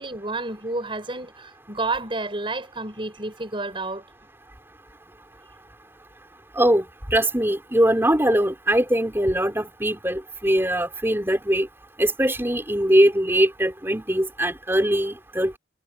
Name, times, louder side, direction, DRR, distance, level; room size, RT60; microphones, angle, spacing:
voice 1, 0.0-4.0, right 2 dB, 30° right, 6.0 m, -30 dB
voice 2, 6.5-11.7 12.0-15.6, right 1 dB, 15° right, 4.9 m, -21 dB
head